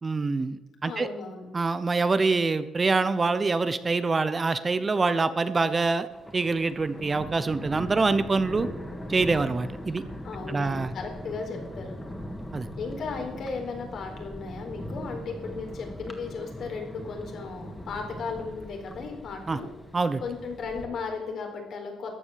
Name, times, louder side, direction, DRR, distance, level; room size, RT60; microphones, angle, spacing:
voice 1, 0.0-1.1 1.5-6.1 6.3-8.7 9.1-10.0 10.5-10.9 12.5-12.7 19.5-19.6 19.9-20.2, right 3 dB, 30° right, 13 dB, 0.9 m, -25 dB
voice 2, 0.8-1.5 10.2-11.9 12.8-19.7 20.2-22.2, left 4 dB, 65° left, 3 dB, 4.3 m, -36 dB
Thunder, 6.1-20.8, equal, 15° left, 2.5 m, -40 dB
14.5 x 9.7 x 7.6 m, 1.2 s
cardioid pair, 90°, 0 cm